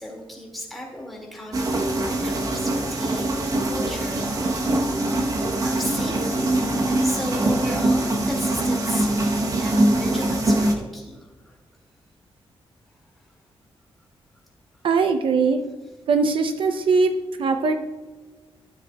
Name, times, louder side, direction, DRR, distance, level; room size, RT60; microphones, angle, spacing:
voice 1, 0.0-6.6 7.0-11.6 13.2-13.4 14.7-14.9, left 1 dB, ahead, -2 dB, 2.1 m, -36 dB
sound 1, 1.5-10.8, right 1 dB, 35° right, 0.9 m, -23 dB
voice 2, 14.8-15.6 16.1-17.1 17.4-17.7, right 4 dB, 60° right, 6 dB, 0.6 m, -20 dB
13.0 x 7.5 x 2.3 m, 1.3 s
wide cardioid pair, 165°, 10 cm